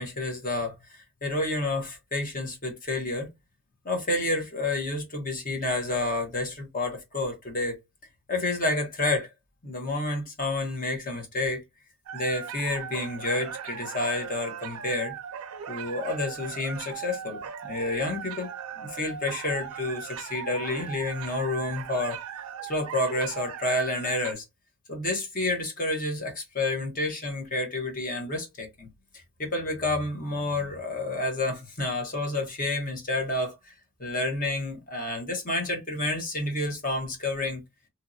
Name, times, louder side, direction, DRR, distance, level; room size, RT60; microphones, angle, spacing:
voice 1, 0.0-3.3 3.8-7.8 8.3-9.3 9.6-11.6 12.1-15.1 15.7-22.2 22.6-24.4 24.9-28.9 29.1-33.7 34.0-37.6, left 2 dB, 40° left, 0.9 m, -29 dB
sound 1, 12.1-24.3, right 9 dB, 90° right, 0.4 m, -39 dB
2.8 x 2.7 x 2.5 m
head